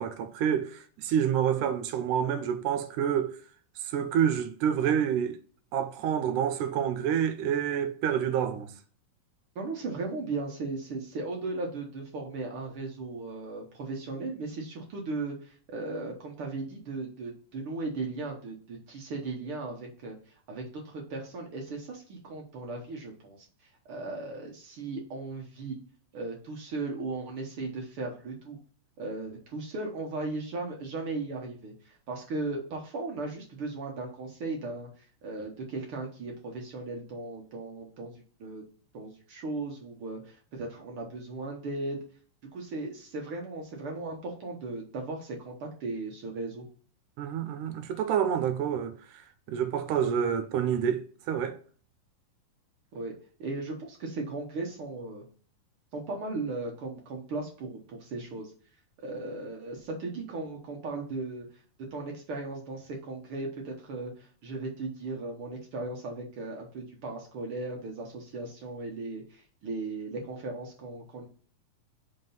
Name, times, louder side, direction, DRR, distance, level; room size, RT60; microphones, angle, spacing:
voice 1, 0.0-3.4 3.8-5.4 5.7-8.7 47.2-51.6, right 8 dB, 75° right, 2.2 m, -28 dB
voice 2, 9.5-23.5 23.9-25.8 26.1-28.6 29.0-38.1 38.4-38.6 38.9-42.0 42.5-46.7 52.9-53.1 53.4-55.2 55.9-58.5 59.0-61.5 61.8-71.3, right 3 dB, 60° right, 1.5 m, -37 dB
5.7 x 3.7 x 5.4 m
omnidirectional pair, 3.9 m